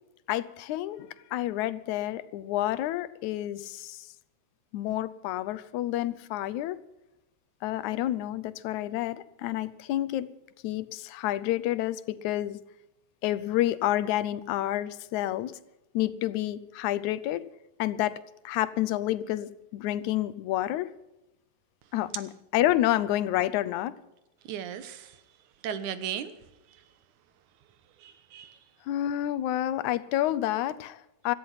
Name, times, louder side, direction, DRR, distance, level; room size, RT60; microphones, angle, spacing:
voice 1, 0.3-4.1 4.7-6.8 7.6-10.3 10.6-12.6 13.2-15.6 15.9-17.4 17.8-18.2 18.4-20.9 21.9-24.0 28.9-31.3, left 14 dB, 80° left, 15 dB, 2.1 m, -29 dB
voice 2, 24.4-25.2 25.6-26.3 26.7-26.8 28.0-28.6, right 8 dB, 90° right, 12 dB, 2.6 m, -36 dB
17.5 x 13.5 x 5.8 m, 0.93 s
omnidirectional pair, 3.4 m